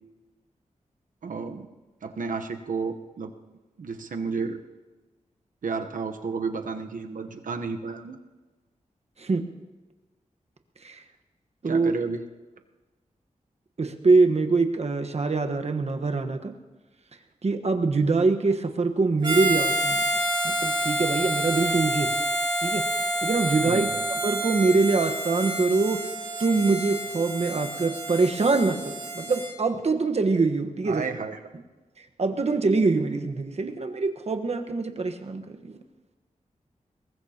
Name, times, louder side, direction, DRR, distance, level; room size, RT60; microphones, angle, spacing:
voice 1, 1.2-1.7 2.0-3.3 3.8-4.6 5.6-8.2 11.6-12.2 23.6-24.0 30.8-31.4, right 4 dB, 85° right, 6 dB, 1.0 m, -32 dB
voice 2, 13.8-16.5 17.4-20.1 20.4-22.1 22.6-22.8 23.2-23.9 24.2-26.0 26.4-31.0 32.2-35.8, right 3 dB, 55° right, 5 dB, 1.3 m, -24 dB
Harmonica, 19.2-29.5, right 1 dB, 35° right, 4.6 m, -28 dB
22.5 x 19.5 x 2.9 m, 1.2 s
wide cardioid pair, 80°, 13 cm